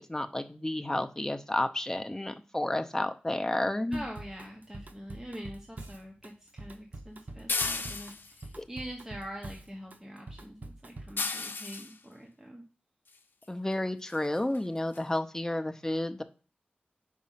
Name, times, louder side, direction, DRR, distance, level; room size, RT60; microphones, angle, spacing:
voice 1, 0.0-4.0 8.6-8.7 13.5-16.2, left 1 dB, 15° left, 7 dB, 0.6 m, -31 dB
voice 2, 3.9-12.6, equal, 15° right, 0 dB, 1.1 m, -44 dB
Drum kit / Drum, 3.9-11.2, right 2 dB, 55° right, 0.8 m, -45 dB
sound 1, 7.5-8.5 11.2-11.9 13.4-13.5 14.1-14.2 14.5-14.6 14.9-15.0, left 4 dB, 80° left, 0.6 m, -33 dB
5.2 x 4.8 x 5.7 m, 0.37 s
wide cardioid pair, 80°, 3 cm